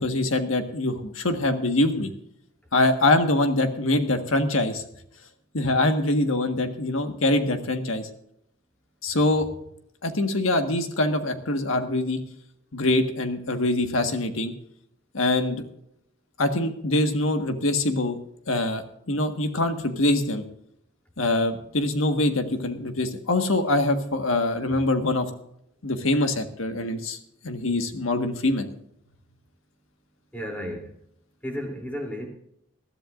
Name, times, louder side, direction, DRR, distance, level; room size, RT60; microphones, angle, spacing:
voice 1, 0.0-2.1 2.7-4.8 5.5-8.1 9.0-9.5 10.0-12.2 12.7-14.5 15.1-15.7 16.4-18.2 18.5-18.8 19.1-20.4 21.2-25.3 25.8-27.2 27.4-28.7, left 2 dB, 85° left, 6 dB, 1.6 m, -24 dB
voice 2, 30.3-30.9 31.4-32.3, equal, 10° left, 0 dB, 3.2 m, -33 dB
20.5 x 13.5 x 2.6 m, 0.74 s
head